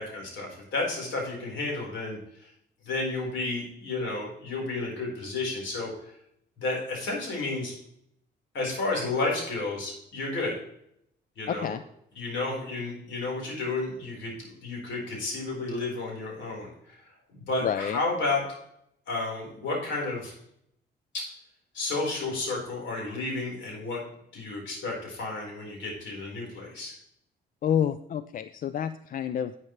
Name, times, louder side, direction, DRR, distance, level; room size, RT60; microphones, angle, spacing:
voice 1, 0.0-2.5 2.8-6.1 6.6-7.7 8.5-10.5 11.4-11.7 12.1-17.0 17.3-18.4 19.1-20.3 21.7-24.0 24.3-26.9, left 3 dB, 70° left, -2 dB, 4.5 m, -32 dB
voice 2, 11.5-11.8 17.6-18.0 27.6-29.6, left 9 dB, 45° left, 13 dB, 0.4 m, -29 dB
10.5 x 8.7 x 3.3 m, 0.73 s
cardioid pair, 105°, 20 cm